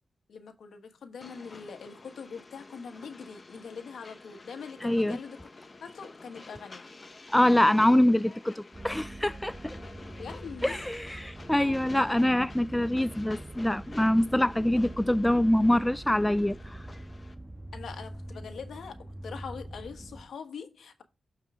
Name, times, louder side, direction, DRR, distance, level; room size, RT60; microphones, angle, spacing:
voice 1, 0.3-5.5 5.8-6.8 10.2-10.8 17.7-21.0, left 6 dB, 80° left, 1.2 m, -43 dB
Train, 1.2-17.3, left 3 dB, 35° left, 1.1 m, -49 dB
voice 2, 4.8-5.2 7.3-9.8 10.6-16.8, left 1 dB, 10° left, 0.3 m, -25 dB
sound 1, 8.7-20.2, right 1 dB, 15° right, 1.5 m, -44 dB
6.9 x 5.5 x 3.6 m
cardioid pair, 65°, 0 cm